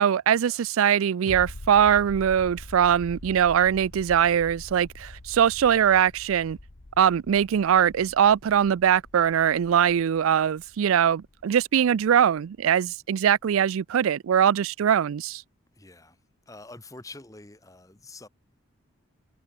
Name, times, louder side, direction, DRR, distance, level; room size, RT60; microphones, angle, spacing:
voice 1, 0.0-6.6 7.0-15.4, right 8 dB, 85° right, 0.4 m, -22 dB
sound 1, 1.3-12.6 12.9-13.0, left 1 dB, 90° left, 1.6 m, -44 dB
voice 2, 15.7-16.2 16.5-18.3, left 2 dB, 15° left, 1.1 m, -46 dB
head